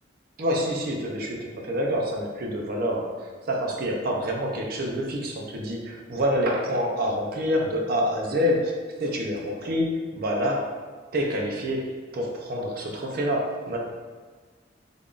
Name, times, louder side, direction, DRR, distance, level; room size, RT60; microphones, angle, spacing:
voice 1, 0.4-10.8 11.1-13.9, equal, 55° right, 0 dB, 0.5 m, -27 dB
3.7 x 3.4 x 2.4 m, 1.4 s
head